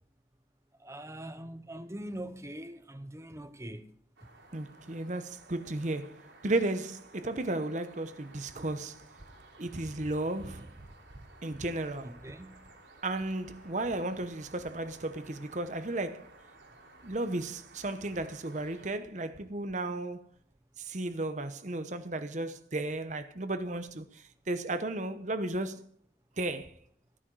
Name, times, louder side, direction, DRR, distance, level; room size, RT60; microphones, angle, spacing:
voice 1, 0.8-3.8 12.0-12.6, right 1 dB, 15° right, 0.8 m, -42 dB
sound 1, 4.2-19.0, right 2 dB, 85° right, 3.5 m, -56 dB
voice 2, 4.5-9.0 9.6-10.7 11.4-12.1 13.0-16.3 17.0-20.2 20.8-24.0 24.5-25.8 26.4-26.7, right 2 dB, 40° right, 0.9 m, -34 dB
15.0 x 10.0 x 4.8 m
head